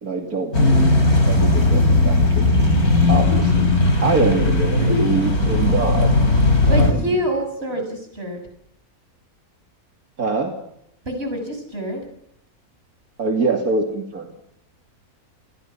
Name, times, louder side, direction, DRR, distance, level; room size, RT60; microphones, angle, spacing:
voice 1, 0.0-1.0 1.3-2.8 3.1-3.7 4.0-6.1 6.7-7.1 7.7-7.8 10.2-10.6 13.2-14.3, right 3 dB, 85° right, 3 dB, 3.1 m, -24 dB
sound 1, 0.5-6.9, left 2 dB, 85° left, 5.4 m, -17 dB
voice 2, 4.3-5.0 6.6-8.4 11.0-12.0, equal, 45° right, 5 dB, 6.9 m, -26 dB
30.0 x 22.0 x 5.8 m, 0.78 s
omnidirectional pair, 1.5 m